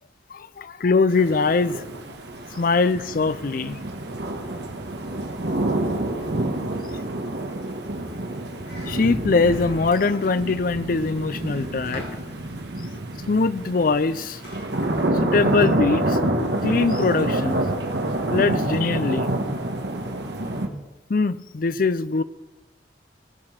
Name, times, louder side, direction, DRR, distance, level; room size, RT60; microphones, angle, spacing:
voice 1, 0.3-1.8 2.6-3.8 8.9-12.0 13.3-14.4 15.2-16.2 16.6-17.6 18.3-19.3 21.1-22.2, left 4 dB, 50° left, 15 dB, 0.5 m, -22 dB
sound 1, 1.1-20.7, right 1 dB, 65° right, 1.4 m, -27 dB
sound 2, 8.6-10.3 11.4-12.2 14.4-14.7, left 1 dB, 65° left, 4.6 m, -41 dB
18.5 x 6.9 x 5.8 m, 1.1 s
head